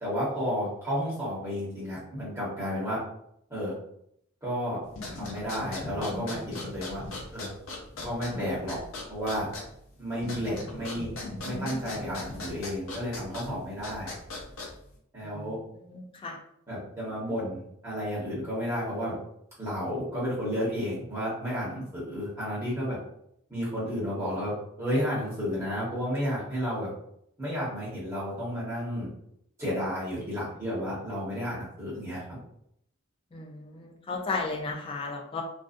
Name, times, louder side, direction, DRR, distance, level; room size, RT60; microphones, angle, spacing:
voice 1, 0.0-3.0 3.5-3.7 4.4-4.8 5.2-7.0 7.3-7.5 8.0-8.8 9.1-9.5 10.0-11.1 11.4-14.1 15.1-15.6 16.7-19.1 19.6-23.0 23.5-26.9 27.4-29.1 29.6-32.4, equal, 15° right, -9 dB, 1.1 m, -32 dB
sound 1, 4.9-15.0, left 2 dB, 70° left, 0.6 m, -39 dB
voice 2, 15.2-16.4 33.3-35.4, left 3 dB, 25° left, 1 dB, 0.3 m, -35 dB
2.5 x 2.3 x 2.5 m, 0.72 s
head